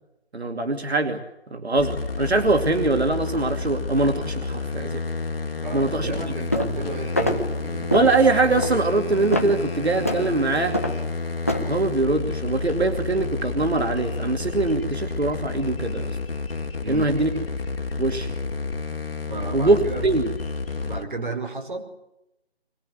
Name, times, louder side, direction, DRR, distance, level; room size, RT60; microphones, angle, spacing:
voice 1, 0.3-1.2 1.5-5.0 5.7-6.1 7.9-10.8 11.6-16.2 16.9-17.3 18.0-18.3 19.5-20.3, right 3 dB, 85° right, 4 dB, 2.7 m, -22 dB
sound 1, 1.8-21.0, left 3 dB, 60° left, 2.8 m, -30 dB
voice 2, 5.6-8.0 16.8-17.2 19.3-20.1 20.8-21.9, right 3 dB, 50° right, 3 dB, 4.8 m, -33 dB
sound 2, 6.5-6.8 7.2-7.4 7.9-8.2 8.6-8.7 9.3-9.6 10.1-10.2 10.7-11.0 11.5-11.7, left 1 dB, 15° left, 0.9 m, -24 dB
23.5 x 19.0 x 9.4 m, 0.89 s
figure-of-eight pair, 175°, 32 cm